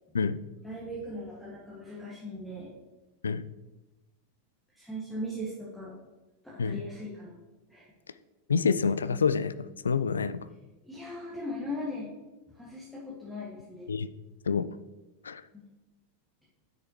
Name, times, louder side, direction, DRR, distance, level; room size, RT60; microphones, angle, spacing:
voice 1, 0.6-2.7 4.8-6.0 6.4-7.4 7.7-7.9 10.8-12.1 12.5-13.9 15.5-15.7, left 1 dB, ahead, -7 dB, 1.8 m, -39 dB
voice 2, 8.5-9.5 9.8-10.4 13.9-14.1 14.5-14.7 15.2-15.4, left 5 dB, 75° left, 16 dB, 0.3 m, -27 dB
8.5 x 6.6 x 3.0 m, 1.1 s
figure-of-eight pair, 90°, 0 cm